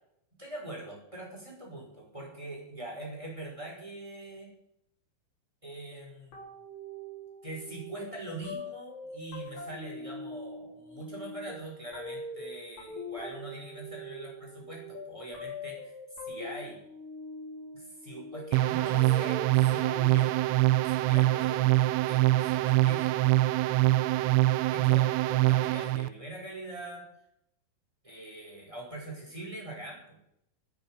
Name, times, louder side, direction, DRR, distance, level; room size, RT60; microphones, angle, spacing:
voice 1, 0.4-4.5 5.6-6.4 7.4-15.9 16.2-16.8 17.7-20.5 20.9-23.5 24.7-27.0 28.0-30.2, right 1 dB, 5° right, -2 dB, 5.3 m, -43 dB
sound 1, 6.3-21.7, left 1 dB, 55° left, 5.5 m, -43 dB
sound 2, 18.5-26.1, right 17 dB, 90° right, 3.2 m, -24 dB
11.5 x 9.9 x 9.3 m, 0.76 s
omnidirectional pair, 5.6 m